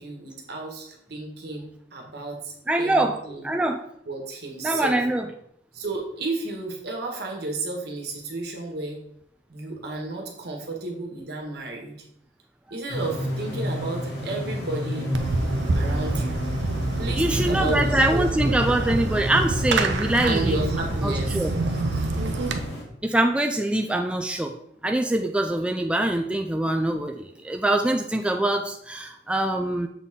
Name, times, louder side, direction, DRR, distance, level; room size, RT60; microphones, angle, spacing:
voice 1, 0.0-3.5 4.1-5.0 5.7-9.0 9.5-12.0 12.7-15.1 15.7-16.5 17.0-18.6 20.2-22.1, right 2 dB, 65° right, 0 dB, 1.5 m, -32 dB
voice 2, 2.7-3.8 4.6-5.3 17.1-20.6 21.0-21.5 23.0-24.5 24.8-29.9, right 1 dB, 5° right, 3 dB, 0.3 m, -24 dB
sound 1, 12.9-22.8, left 1 dB, 70° left, 1.4 m, -31 dB
Fireworks, 15.1-22.6, right 2 dB, 80° right, 0.6 m, -27 dB
7.1 x 4.1 x 3.6 m, 0.72 s
head